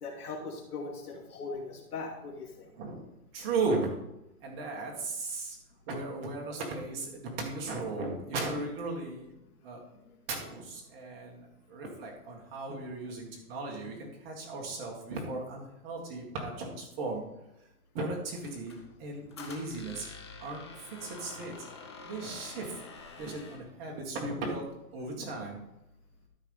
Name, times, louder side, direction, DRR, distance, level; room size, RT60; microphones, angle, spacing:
voice 1, 0.0-2.7, left 3 dB, 75° left, -2 dB, 3.0 m, -40 dB
voice 2, 3.3-3.9 4.4-5.6 5.9-9.3 9.6-9.8 10.3-11.4 11.7-17.2 17.9-18.7 19.0-20.0 20.4-21.5 22.1-22.7 23.2-24.6 24.9-25.6, right 3 dB, 20° right, -1 dB, 1.8 m, -36 dB
Squeak, 18.4-23.7, left 4 dB, 20° left, 0.6 m, -48 dB
13.0 x 4.7 x 5.5 m, 0.87 s
hypercardioid pair, 165°, 45 cm